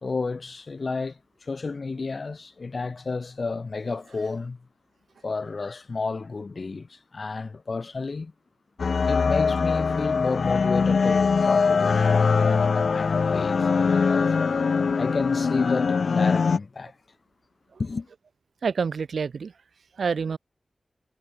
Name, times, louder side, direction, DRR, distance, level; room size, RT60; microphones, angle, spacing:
voice 1, 0.0-4.7 5.2-8.3 9.1-12.0 12.3-14.3 15.0-17.0 17.8-18.1, left 4 dB, 65° left, 1.9 m, -31 dB
sound 1, 8.8-16.6, left 5 dB, 80° left, 0.5 m, -22 dB
voice 2, 18.6-19.5 20.0-20.4, right 5 dB, 85° right, 3.9 m, -27 dB
cardioid pair, 45°, 0 cm